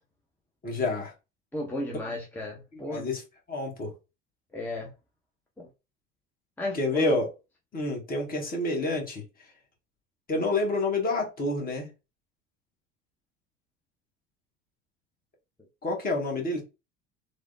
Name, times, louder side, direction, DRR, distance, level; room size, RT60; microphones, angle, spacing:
voice 1, 0.6-1.1 2.9-3.2 3.5-3.9 6.7-7.3 7.7-9.2 10.3-11.9 15.8-16.6, left 2 dB, 30° left, 1.2 m, -28 dB
voice 2, 1.5-3.1 4.5-4.9 5.6-5.7 6.6-7.2, left 1 dB, 5° left, 0.7 m, -33 dB
3.2 x 2.1 x 2.6 m
hypercardioid pair, 70°, 29 cm